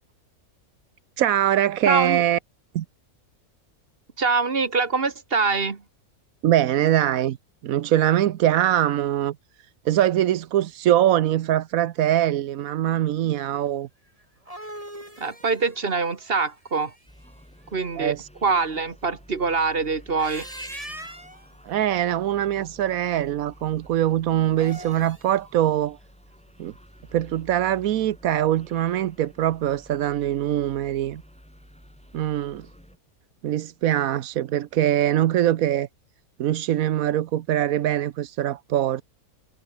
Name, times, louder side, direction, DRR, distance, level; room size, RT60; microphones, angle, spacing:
voice 1, 1.2-2.4 2.7-2.8 6.4-7.4 7.6-9.4 9.8-13.9 18.0-18.3 21.7-26.0 26.6-26.7 27.1-31.2 32.1-32.7 33.4-35.9 36.4-39.0, right 12 dB, 75° right, 1.1 m, -22 dB
voice 2, 1.8-2.2 4.2-5.8 15.2-16.9 17.7-18.1 18.4-20.5, right 4 dB, 40° right, 1.7 m, -24 dB
sound 1, 14.2-17.3 20.0-21.5 24.4-25.3, right 1 dB, 20° right, 8.1 m, -41 dB
sound 2, 17.1-33.0, equal, 5° left, 7.3 m, -51 dB
omnidirectional pair, 1.6 m